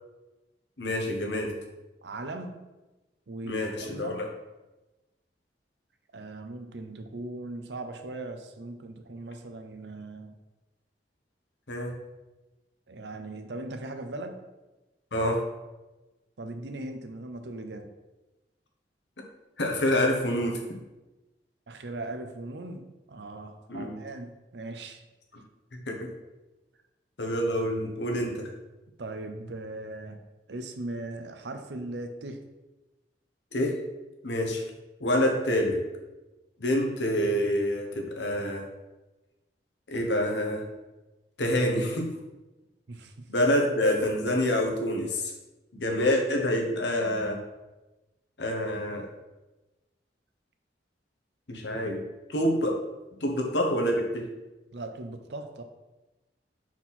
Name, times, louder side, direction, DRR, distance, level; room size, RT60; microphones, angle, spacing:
voice 1, 0.8-1.5 3.4-4.3 11.7-11.9 15.1-15.4 19.6-20.8 23.7-23.9 25.9-26.1 27.2-28.5 33.5-33.8 34.2-34.6 35.0-35.8 36.6-38.7 39.9-40.7 41.4-42.1 43.3-45.3 45.7-47.4 48.4-49.1 51.5-52.0 52.3-52.8 53.2-54.3, left 1 dB, 75° left, 1 dB, 1.1 m, -27 dB
voice 2, 2.0-2.6 3.3-4.3 6.1-10.3 12.9-14.4 16.4-17.9 21.7-25.0 29.0-30.2 30.5-32.4 42.9-43.3 54.7-55.6, right 2 dB, 70° right, 7 dB, 0.7 m, -39 dB
5.8 x 4.5 x 4.1 m, 1.1 s
head